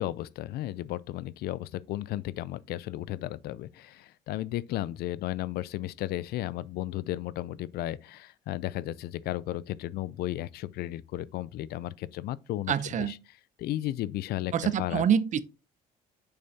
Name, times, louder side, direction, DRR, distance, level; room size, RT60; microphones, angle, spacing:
voice 1, 0.0-12.7 13.1-13.2 13.6-14.5 14.8-15.0, left 14 dB, 70° left, 0.4 m, -34 dB
voice 2, 12.7-13.1 14.5-15.4, right 8 dB, 45° right, 0.6 m, -26 dB
6.7 x 5.5 x 2.7 m
cardioid pair, 110°, 17 cm